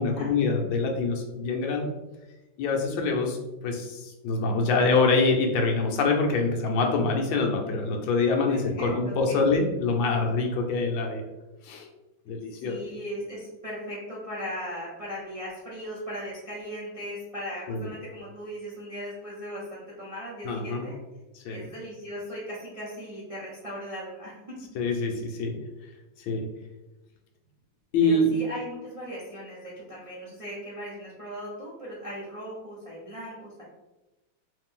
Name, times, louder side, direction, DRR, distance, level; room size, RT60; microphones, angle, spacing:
voice 1, 0.0-1.9 2.6-3.4 3.6-11.2 11.6-11.9 12.3-12.8 17.7-17.9 20.4-20.8 21.4-21.7 24.7-25.5 26.3-26.5 27.9-28.3, left 3 dB, 75° left, 2 dB, 1.3 m, -25 dB
voice 2, 8.5-9.4 12.6-21.0 21.5-24.4 28.0-33.6, equal, 55° right, -7 dB, 0.3 m, -38 dB
3.2 x 3.2 x 3.6 m, 1.0 s
omnidirectional pair, 2.3 m